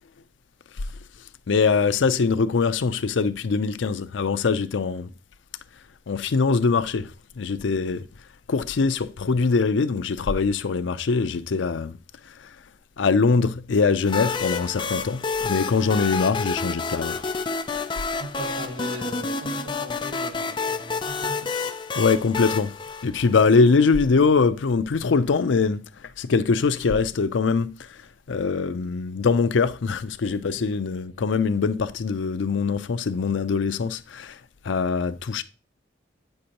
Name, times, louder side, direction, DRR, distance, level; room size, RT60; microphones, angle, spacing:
voice 1, 1.5-5.1 6.1-7.1 7.4-8.0 8.5-11.9 13.0-17.2 22.0-22.7 23.0-25.8 26.2-27.7 28.3-34.3 34.7-35.4, left 4 dB, 85° left, 0.5 m, -22 dB
sound 1, 14.1-23.7, left 4 dB, 25° left, 0.4 m, -29 dB
voice 2, 18.2-21.6 30.6-30.7, right 1 dB, 90° right, 3.0 m, -38 dB
8.5 x 6.6 x 2.9 m
head